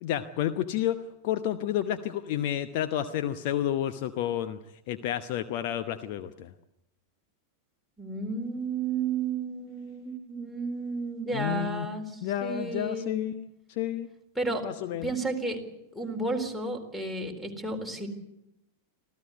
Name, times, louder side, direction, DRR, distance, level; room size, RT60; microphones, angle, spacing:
voice 1, 0.0-1.0 1.2-4.6 4.9-6.5 11.3-11.9 12.2-14.1 14.6-15.1, left 11 dB, 50° left, 10 dB, 0.9 m, -30 dB
voice 2, 8.0-13.2 14.4-14.7 15.0-15.6 15.9-18.1, right 3 dB, 5° left, 9 dB, 4.1 m, -32 dB
26.5 x 15.5 x 8.2 m, 0.86 s
figure-of-eight pair, 90°, 0 cm